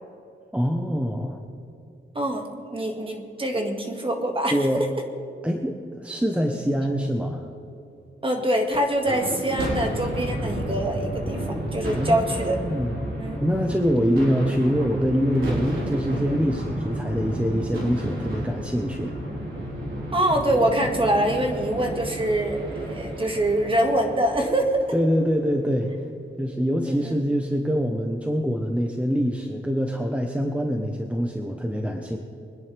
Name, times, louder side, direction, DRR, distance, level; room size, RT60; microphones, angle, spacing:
voice 1, 0.5-1.4 4.5-4.8 5.4-7.5 11.9-13.0 13.4-19.1 24.9-25.9 26.4-32.2, equal, 5° right, 3 dB, 1.1 m, -24 dB
voice 2, 2.1-4.6 8.2-12.6 13.2-13.4 20.1-24.9 26.8-27.1, right 1 dB, 25° right, 2 dB, 2.0 m, -24 dB
sound 1, 9.0-25.4, right 1 dB, 85° right, 4.1 m, -32 dB
24.0 x 10.5 x 3.5 m, 2.6 s
cardioid pair, 85°, 20 cm